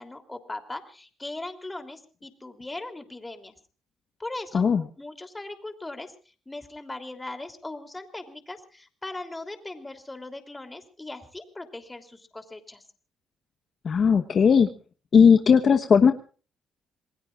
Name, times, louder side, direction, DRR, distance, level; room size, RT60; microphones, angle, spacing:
voice 1, 0.0-3.5 4.2-4.6 5.0-6.1 6.5-12.8, left 2 dB, 15° left, 6 dB, 3.1 m, -39 dB
voice 2, 13.8-14.7 15.1-16.1, left 6 dB, 50° left, 7 dB, 1.1 m, -17 dB
27.5 x 19.5 x 2.5 m, 0.39 s
cardioid pair, 90°, 0 cm